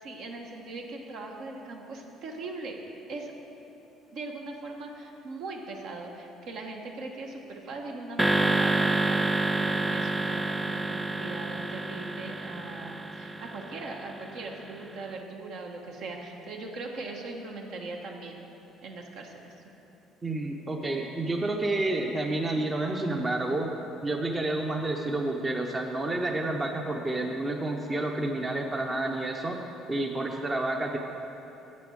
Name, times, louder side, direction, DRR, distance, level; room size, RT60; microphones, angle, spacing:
voice 1, 0.0-2.8 3.1-3.3 4.1-18.4 18.8-19.5, right 3 dB, 65° right, 1 dB, 1.3 m, -40 dB
sound 1, 8.2-14.6, right 1 dB, 5° right, 0.3 m, -28 dB
voice 2, 20.2-23.7 24.0-29.6 29.9-31.0, right 2 dB, 20° right, 2 dB, 0.7 m, -29 dB
8.5 x 7.9 x 6.4 m, 3.0 s
cardioid pair, 110°, 0 cm